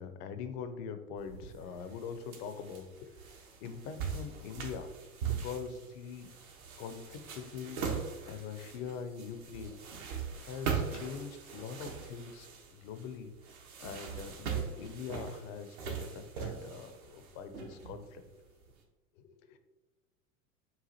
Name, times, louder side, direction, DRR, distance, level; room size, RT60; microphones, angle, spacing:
voice 1, 0.0-3.3 3.6-4.9 5.2-6.3 6.8-7.8 8.2-9.8 10.0-13.3 13.8-18.4 19.2-19.6, left 6 dB, 40° left, 9 dB, 0.5 m, -43 dB
sound 1, 1.2-18.6, right 6 dB, 70° right, 1.0 m, -41 dB
7.0 x 2.4 x 2.7 m, 1.1 s
figure-of-eight pair, 85°, 45 cm